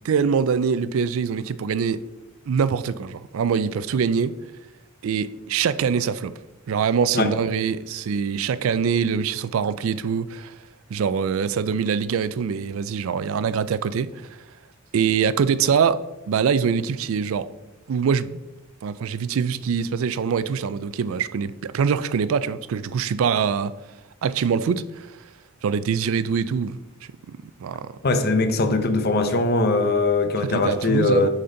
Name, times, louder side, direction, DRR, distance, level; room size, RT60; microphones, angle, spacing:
voice 1, 0.0-2.1 2.5-4.3 5.0-6.3 6.7-10.6 10.9-14.3 14.9-17.5 17.9-18.4 18.8-23.8 24.2-25.1 25.6-26.8 27.3-27.9 30.4-31.3, right 6 dB, 75° right, 0.4 m, -24 dB
voice 2, 28.0-31.3, left 2 dB, 50° left, 0.7 m, -21 dB
8.6 x 4.3 x 3.8 m
head